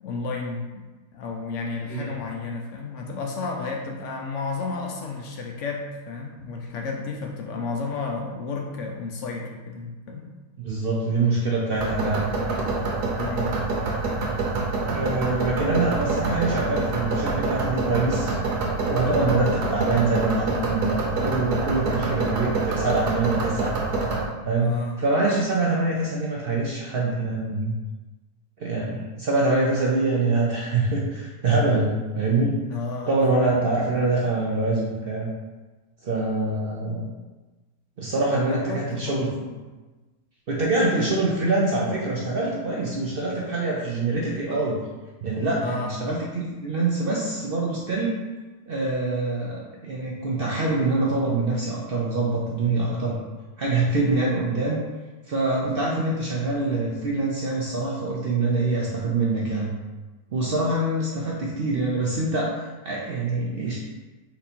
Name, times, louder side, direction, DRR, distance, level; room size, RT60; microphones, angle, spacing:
voice 1, 0.0-0.7 1.1-10.3 13.2-13.5 24.6-25.0 32.7-33.3 38.3-39.6 45.6-45.9 54.0-54.4, left 4 dB, 70° left, 1 dB, 0.7 m, -32 dB
voice 2, 1.9-2.2 10.6-12.3 14.9-18.4 18.9-23.8 24.4-27.7 28.6-32.6 33.1-35.3 36.0-37.1 38.0-39.3 40.5-44.8 45.2-48.2 48.7-53.2 53.6-54.8 55.3-59.7 60.3-62.5 62.8-63.8, right 2 dB, 65° right, -4 dB, 0.5 m, -24 dB
sound 1, 11.7-24.2, right 3 dB, 80° right, 1.4 m, -26 dB
4.3 x 2.7 x 4.2 m, 1.2 s
omnidirectional pair, 1.7 m